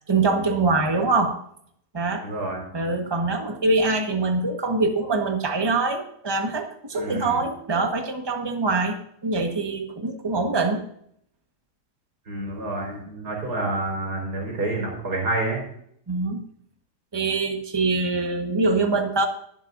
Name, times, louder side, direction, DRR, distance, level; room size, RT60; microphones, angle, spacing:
voice 1, 0.1-1.4 1.9-2.3 2.7-9.0 9.2-10.8 16.1-16.4 17.1-19.3, right 3 dB, 15° right, 4 dB, 1.2 m, -24 dB
voice 2, 2.2-2.6 6.9-7.4 12.3-15.6, right 2 dB, 85° right, -1 dB, 4.6 m, -28 dB
22.0 x 7.4 x 2.6 m, 0.68 s
omnidirectional pair, 1.7 m